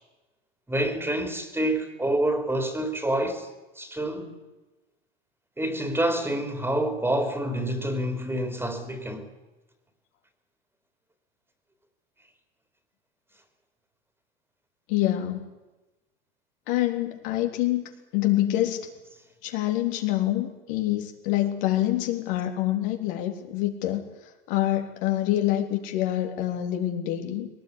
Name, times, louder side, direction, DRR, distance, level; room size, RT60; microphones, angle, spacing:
voice 1, 0.7-3.5 3.8-4.4 5.6-9.3, right 1 dB, 10° right, 3.6 m, -27 dB
voice 2, 14.9-15.4 16.7-18.9 19.4-24.0 24.5-27.5, left 14 dB, 65° left, 3.7 m, -26 dB
21.0 x 19.0 x 9.9 m
hypercardioid pair, 100°, 29 cm